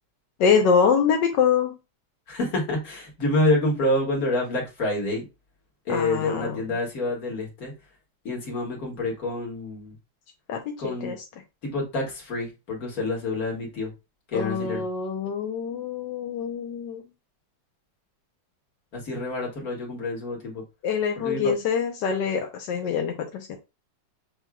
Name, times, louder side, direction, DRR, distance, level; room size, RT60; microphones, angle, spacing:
voice 1, 0.4-1.8 5.9-6.6 10.5-11.2 14.3-17.0 20.8-23.6, left 6 dB, 85° left, 1.3 m, -24 dB
voice 2, 2.3-5.2 5.9-7.7 8.2-9.9 10.8-11.1 11.6-13.9 14.3-14.8 18.9-20.6 21.2-21.5, left 2 dB, 55° left, 2.1 m, -27 dB
7.1 x 3.0 x 2.3 m
omnidirectional pair, 1.9 m